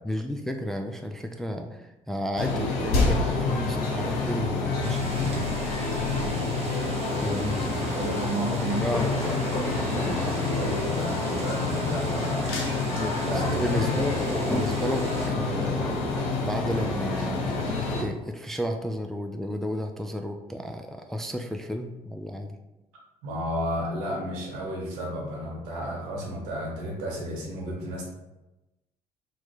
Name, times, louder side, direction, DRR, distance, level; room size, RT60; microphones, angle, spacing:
voice 1, 0.0-5.5 7.2-8.2 8.5-9.1 12.9-14.2 14.5-15.9 16.4-22.6, equal, ahead, 4 dB, 0.3 m, -32 dB
sound 1, 2.4-18.0, left 3 dB, 75° left, 0.7 m, -28 dB
sound 2, 4.8-15.3, right 3 dB, 35° right, 0.8 m, -42 dB
voice 2, 7.6-12.5 13.2-13.9 23.2-28.1, right 1 dB, 75° right, -2 dB, 1.1 m, -32 dB
sound 3, 8.0-18.3, equal, 30° left, 1.2 m, -36 dB
3.0 x 2.7 x 3.6 m, 1.0 s
hypercardioid pair, 50°, 18 cm